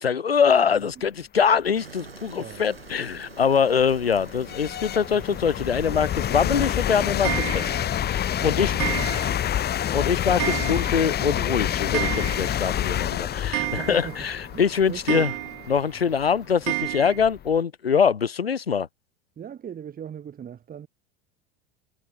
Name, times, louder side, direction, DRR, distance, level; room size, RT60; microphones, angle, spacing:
voice 1, 0.0-7.7 8.0-8.7 9.9-15.3 15.7-18.9, left 7 dB, 85° left, 0.8 m, -23 dB
sound 1, 1.7-8.5, right 5 dB, 85° right, 3.8 m, -46 dB
sound 2, 2.1-2.2 2.8-17.6, left 11 dB, 35° left, 3.3 m, -28 dB
Clock, 7.2-8.0 8.8-9.5 9.8-9.9 10.4-11.2 11.4-11.5 11.8-12.7 13.0-13.1 13.5-14.3 15.1-15.8 16.7-17.2, right 34 dB, 50° right, 1.3 m, -30 dB
voice 2, 8.4-9.5 13.5-14.2 14.5-15.3 19.4-20.9, right 8 dB, 30° right, 7.9 m, -39 dB
figure-of-eight pair, 80°, 29 cm